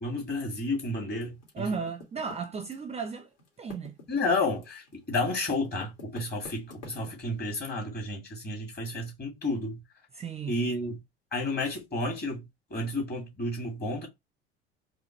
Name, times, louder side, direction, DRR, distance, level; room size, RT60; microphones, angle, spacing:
voice 1, 0.0-1.7 4.1-9.8 10.5-11.0 11.3-14.1, left 2 dB, 30° left, 2.2 m, -31 dB
Typing, 1.4-3.1 3.4-7.4, left 2 dB, 50° left, 2.0 m, -47 dB
voice 2, 1.5-3.3 3.6-3.9 10.1-10.6, right 5 dB, 20° right, 0.5 m, -35 dB
4.9 x 2.3 x 2.9 m
figure-of-eight pair, 65°, 32 cm